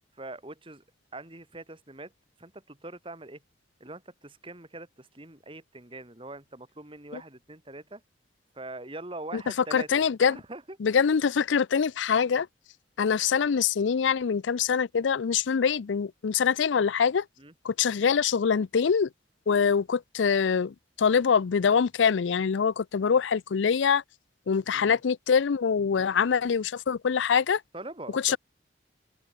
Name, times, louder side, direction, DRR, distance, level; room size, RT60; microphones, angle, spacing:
voice 1, 0.2-0.8 1.1-2.1 2.4-3.4 3.8-8.0 8.5-10.8 17.4-17.5 24.6-25.0 25.9-26.3 27.7-28.4, right 2 dB, 30° right, 3.1 m, -43 dB
voice 2, 9.7-10.4 10.8-12.5 13.0-17.2 17.6-19.1 19.5-24.0 24.5-27.6 28.1-28.4, left 6 dB, 85° left, 0.5 m, -24 dB
head